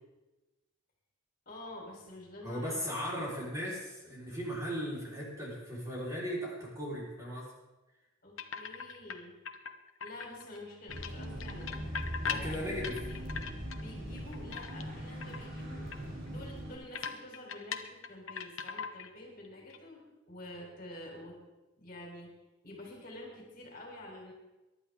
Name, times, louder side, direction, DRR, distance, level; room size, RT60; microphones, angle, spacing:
voice 1, 1.5-2.9 3.2-3.5 8.2-9.3 10.0-11.8 12.2-12.7 13.1-13.2 13.7-15.8 16.3-21.4 21.8-22.3 22.6-24.3, left 1 dB, 45° left, -1 dB, 4.1 m, -48 dB
voice 2, 2.4-7.5 12.2-13.0, equal, 15° right, -5 dB, 4.5 m, -37 dB
sound 1, 8.4-9.2 9.5-10.6 10.9-13.8 14.2-15.0 15.2-15.5 15.9-16.0 16.3-16.4 16.9-19.2 19.4-19.8, left 6 dB, 75° left, 1.1 m, -39 dB
sound 2, 10.9-16.8, equal, 45° right, 3.8 m, -41 dB
23.0 x 11.5 x 3.7 m, 1.1 s
head